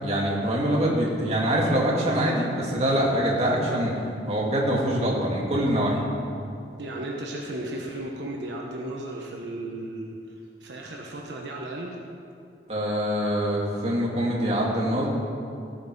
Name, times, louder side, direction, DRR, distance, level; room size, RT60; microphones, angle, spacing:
voice 1, 0.0-3.9 4.3-6.0 12.7-15.1, equal, 35° right, -3 dB, 2.5 m, -24 dB
voice 2, 6.8-10.2 10.6-12.0, right 1 dB, 75° right, -1 dB, 1.3 m, -35 dB
15.0 x 9.0 x 5.5 m, 2.5 s
head